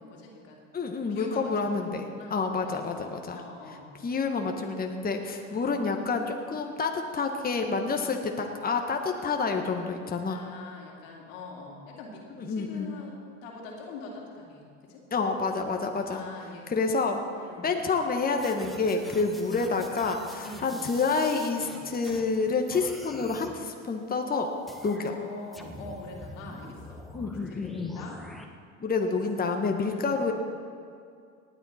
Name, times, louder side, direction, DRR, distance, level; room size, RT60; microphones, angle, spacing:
voice 1, 0.0-0.6 1.1-2.8 3.3-3.9 5.4-5.9 10.3-15.0 16.1-16.7 17.4-17.8 19.3-19.7 20.4-20.9 24.8-28.2 29.0-29.2 29.9-30.3, left 3 dB, 80° left, -1 dB, 2.7 m, -44 dB
voice 2, 0.7-3.4 4.0-10.4 12.4-12.9 15.1-16.2 16.7-17.2 17.6-24.5 24.8-25.1 27.1-28.0 28.8-30.3, left 4 dB, 25° left, 3 dB, 1.3 m, -28 dB
sound 1, 18.4-22.4 22.7-23.6 24.7-25.1 25.5-28.4, left 1 dB, ahead, 1.4 m, -45 dB
18.5 x 9.7 x 4.3 m, 2.3 s
hypercardioid pair, 75°, 38 cm